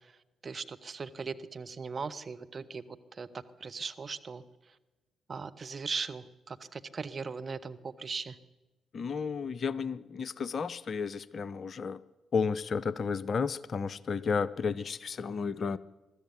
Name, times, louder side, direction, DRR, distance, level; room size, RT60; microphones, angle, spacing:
voice 1, 0.4-2.8 3.2-3.3 3.6-4.4 5.3-8.3, right 5 dB, 35° right, 8 dB, 1.2 m, -38 dB
voice 2, 8.9-12.0 12.3-15.8, left 5 dB, 45° left, 20 dB, 0.6 m, -32 dB
22.0 x 13.0 x 9.7 m, 1.1 s
figure-of-eight pair, 40°, 0 cm